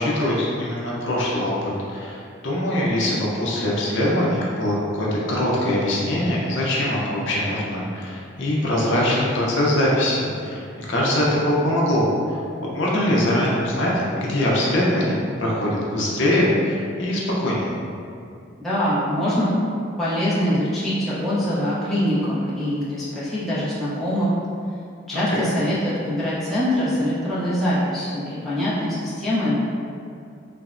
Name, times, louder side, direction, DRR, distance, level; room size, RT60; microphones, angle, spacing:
voice 1, 0.0-12.4 12.7-13.9 14.2-17.7 25.1-25.5, left 1 dB, 70° left, -5 dB, 0.5 m, -22 dB
voice 2, 18.6-19.5 20.0-24.3 25.1-29.6, equal, ahead, -12 dB, 0.5 m, -23 dB
3.1 x 2.0 x 2.4 m, 2.4 s
head